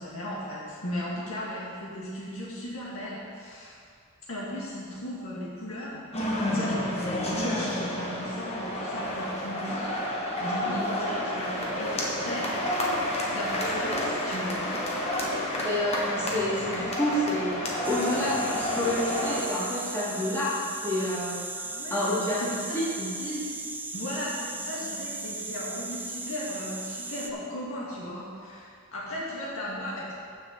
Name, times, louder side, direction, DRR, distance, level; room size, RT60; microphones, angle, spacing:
voice 1, 0.0-3.8 4.3-12.7 13.3-14.8 21.6-22.1 22.4-22.9 23.2-23.5 23.9-30.1, left 1 dB, 65° left, -7 dB, 2.2 m, -36 dB
sound 1, 6.1-19.4, left 1 dB, 30° left, 1.3 m, -30 dB
voice 2, 15.6-21.4 21.9-22.4 22.7-23.1, left 1 dB, 10° left, -10 dB, 2.6 m, -29 dB
sound 2, 17.8-27.3, right 3 dB, 10° right, 0.4 m, -37 dB
7.1 x 6.5 x 7.4 m, 2.2 s
head